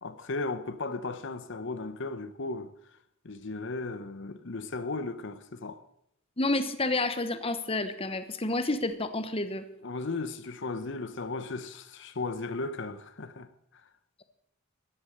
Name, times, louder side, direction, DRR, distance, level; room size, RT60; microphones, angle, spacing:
voice 1, 0.0-2.7 3.2-5.8 9.8-13.8, left 3 dB, 60° left, 0.9 m, -36 dB
voice 2, 6.4-9.6, left 2 dB, 30° left, 1.1 m, -29 dB
15.0 x 11.5 x 6.6 m
head